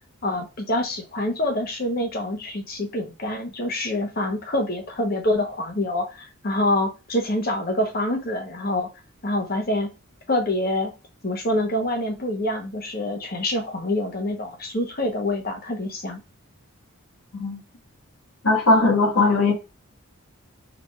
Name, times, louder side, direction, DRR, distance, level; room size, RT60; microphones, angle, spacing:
voice 1, 0.2-8.9 9.2-9.9 10.3-10.9 11.2-16.2, left 1 dB, 45° left, 1.0 m, -26 dB
voice 2, 18.4-19.5, left 3 dB, 85° left, 1.6 m, -18 dB
3.9 x 3.4 x 2.4 m
head